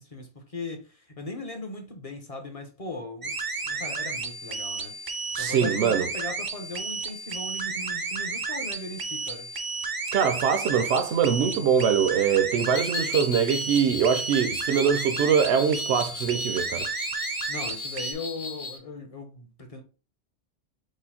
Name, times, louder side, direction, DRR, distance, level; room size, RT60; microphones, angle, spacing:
voice 1, 0.0-9.5 17.2-19.8, left 2 dB, 35° left, 0.7 m, -38 dB
sound 1, 3.2-18.1, right 4 dB, 40° right, 0.3 m, -32 dB
voice 2, 5.4-6.1 10.1-16.9, right 7 dB, 75° right, 0.9 m, -23 dB
sound 2, 12.6-18.8, left 3 dB, 80° left, 1.1 m, -36 dB
5.0 x 2.0 x 4.1 m
omnidirectional pair, 1.2 m